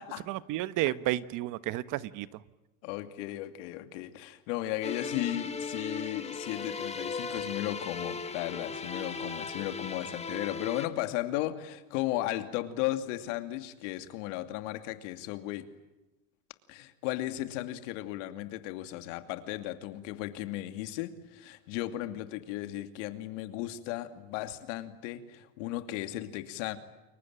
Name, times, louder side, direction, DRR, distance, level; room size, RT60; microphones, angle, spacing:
voice 1, 0.3-2.4, right 15 dB, 55° right, 15 dB, 1.3 m, -32 dB
voice 2, 2.8-15.7 16.7-26.8, left 14 dB, 75° left, 9 dB, 2.6 m, -35 dB
sound 1, 4.8-10.9, left 4 dB, 15° left, 2.1 m, -37 dB
29.5 x 22.5 x 8.9 m, 1.1 s
supercardioid pair, 125°, 37 cm